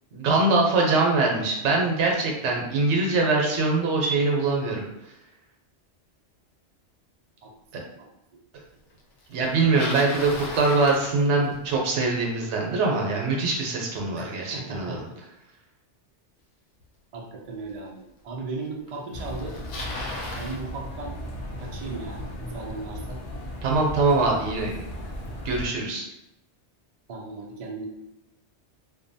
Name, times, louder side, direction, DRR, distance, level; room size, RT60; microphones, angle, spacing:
voice 1, 0.1-4.8 9.3-10.3 10.6-15.1 23.6-24.7 25.4-26.0, right 3 dB, 75° right, 0 dB, 0.9 m, -23 dB
Bicycle, 9.4-11.8 16.8-16.9 17.7-17.8 18.9-19.0 19.2-20.6, left 2 dB, 80° left, 0.9 m, -35 dB
voice 2, 14.2-15.2 17.1-19.6 20.4-21.2 21.6-23.2 27.1-27.9, right 3 dB, 60° right, -1 dB, 0.4 m, -37 dB
sound 1, 19.1-25.7, equal, 65° left, 0.4 m, -36 dB
2.6 x 2.2 x 2.6 m, 0.84 s
omnidirectional pair, 1.2 m